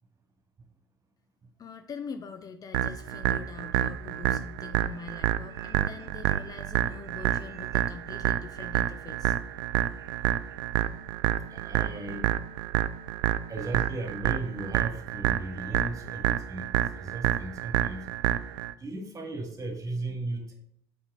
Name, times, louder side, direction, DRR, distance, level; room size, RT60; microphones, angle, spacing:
voice 1, 1.6-9.4, left 5 dB, 30° left, 9 dB, 0.6 m, -43 dB
sound 1, 2.7-18.7, right 13 dB, 65° right, 0.4 m, -28 dB
voice 2, 7.5-7.8 9.8-10.5 11.5-12.3 13.5-18.1 18.8-20.5, right 2 dB, 30° right, 3 dB, 2.1 m, -37 dB
8.5 x 4.3 x 3.8 m, 0.66 s
figure-of-eight pair, 60°, 12 cm